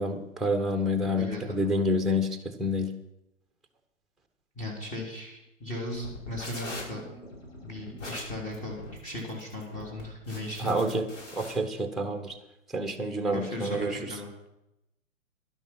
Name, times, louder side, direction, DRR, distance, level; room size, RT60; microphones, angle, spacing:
voice 1, 0.0-2.9 10.6-11.1 11.4-12.4 12.7-14.0, left 1 dB, ahead, 5 dB, 1.2 m, -28 dB
voice 2, 1.1-1.6 4.6-7.0 7.6-10.9 13.3-14.3, left 1 dB, 20° left, -1 dB, 3.6 m, -37 dB
sound 1, 5.9-11.5, left 2 dB, 65° left, 6.1 m, -42 dB
12.0 x 11.5 x 5.6 m, 0.88 s
figure-of-eight pair, 120°, 40 cm